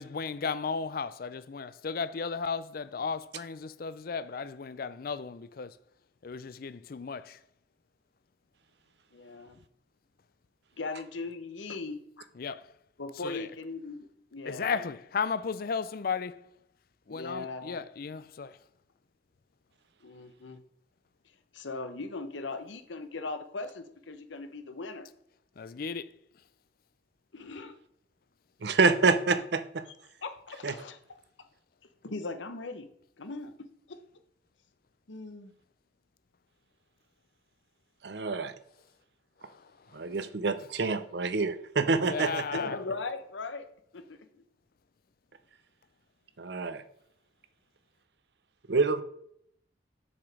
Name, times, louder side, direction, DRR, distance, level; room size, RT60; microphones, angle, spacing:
voice 1, 0.0-5.7 6.2-7.2 12.4-12.6 14.5-16.4 17.1-18.5 25.6-26.0 42.1-42.7, left 5 dB, 50° left, 0.4 m, -34 dB
voice 2, 9.1-9.6 10.8-12.3 13.0-14.9 17.1-17.8 20.0-20.6 21.5-25.1 27.3-27.8 30.2-31.0 32.0-32.9 33.2-34.0 35.1-35.5 42.5-43.7 43.9-44.4, left 3 dB, 85° left, 0.9 m, -39 dB
voice 3, 28.6-29.8 30.6-30.7 38.0-38.5 39.9-42.5 46.4-46.8 48.7-49.0, right 4 dB, 60° right, 0.6 m, -27 dB
7.2 x 5.0 x 4.8 m
head